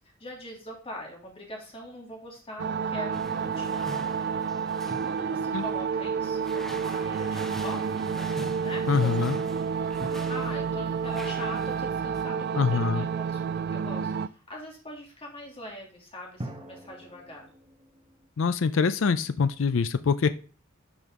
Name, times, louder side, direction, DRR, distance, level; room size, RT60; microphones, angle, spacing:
voice 1, 0.2-3.9 5.0-9.5 9.8-17.5, equal, 25° left, -1 dB, 2.6 m, -42 dB
sound 1, 2.6-14.3, right 6 dB, 50° right, 0.3 m, -30 dB
sound 2, 3.1-12.2, equal, ahead, 0.6 m, -45 dB
voice 2, 8.9-9.4 12.5-13.1 18.4-20.3, left 5 dB, 65° left, 12 dB, 0.4 m, -24 dB
sound 3, 16.4-18.3, right 1 dB, 25° right, 1.1 m, -46 dB
11.0 x 5.4 x 3.6 m, 0.38 s
head